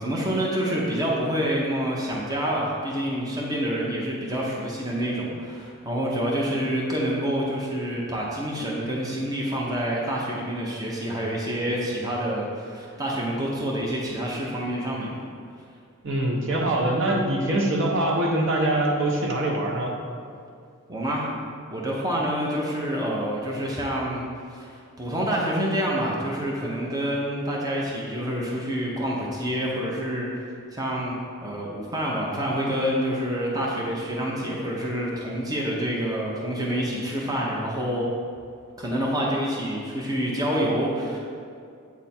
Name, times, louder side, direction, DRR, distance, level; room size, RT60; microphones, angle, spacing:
voice 1, 0.0-15.2 20.9-21.3 21.7-30.3 30.7-31.1 31.4-38.1 38.8-41.2, equal, 15° right, -4 dB, 0.7 m, -27 dB
voice 2, 16.0-19.9, right 1 dB, 60° right, -1 dB, 0.9 m, -23 dB
8.2 x 3.5 x 4.3 m, 2.3 s
head